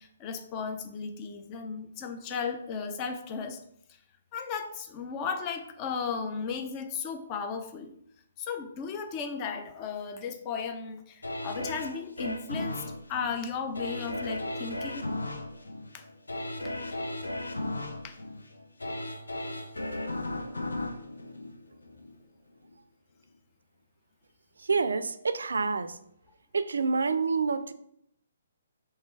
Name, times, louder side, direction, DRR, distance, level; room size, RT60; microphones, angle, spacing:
voice 1, 0.0-3.6 4.3-8.0 8.4-12.8 13.1-15.0 15.9-16.0 18.0-18.2, left 5 dB, 30° left, 6 dB, 0.5 m, -35 dB
sound 1, 11.2-22.2 22.6-22.7, left 1 dB, 90° left, 0.6 m, -36 dB
voice 2, 24.6-26.0 26.5-27.7, right 4 dB, 75° right, 12 dB, 0.4 m, -27 dB
3.3 x 3.3 x 4.5 m, 0.72 s
hypercardioid pair, 140°, 0 cm